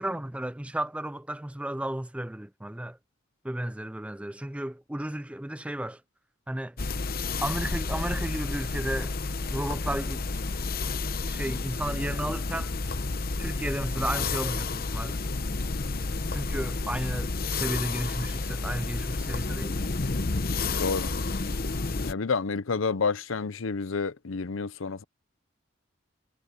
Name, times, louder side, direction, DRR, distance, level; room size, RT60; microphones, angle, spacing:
voice 1, 0.0-3.0 3.4-6.0 6.5-6.8 7.4-9.2 9.5-10.2 10.8-12.7 13.4-15.2 16.3-19.9, right 1 dB, 5° right, 0.4 m, -33 dB
sound 1, 6.8-22.1, left 3 dB, 45° left, 0.8 m, -30 dB
voice 2, 20.8-21.1 22.0-25.0, left 4 dB, 75° left, 0.7 m, -29 dB
head